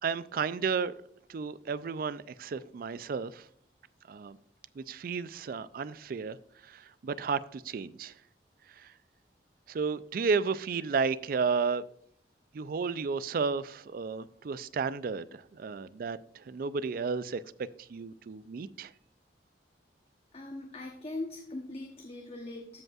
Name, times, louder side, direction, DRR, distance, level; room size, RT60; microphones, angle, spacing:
voice 1, 0.0-0.9 1.3-3.4 4.1-4.4 4.8-6.4 6.6-8.1 8.8-8.9 9.7-11.8 12.5-17.4 17.9-18.9, right 5 dB, 55° right, 0.3 m, -32 dB
voice 2, 20.3-22.8, left 2 dB, 35° left, 0.9 m, -40 dB
15.0 x 5.3 x 2.4 m
head